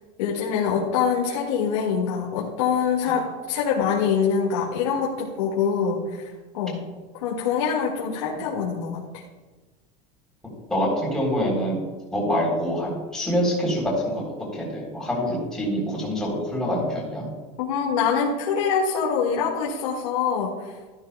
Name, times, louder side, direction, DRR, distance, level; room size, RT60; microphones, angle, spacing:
voice 1, 0.2-6.8 7.2-9.0 17.6-20.7, left 6 dB, 85° left, -2 dB, 1.9 m, -24 dB
voice 2, 10.7-11.8 12.1-17.3, equal, 5° left, -5 dB, 3.6 m, -25 dB
13.5 x 12.5 x 2.3 m, 1.3 s
supercardioid pair, 170°, 17 cm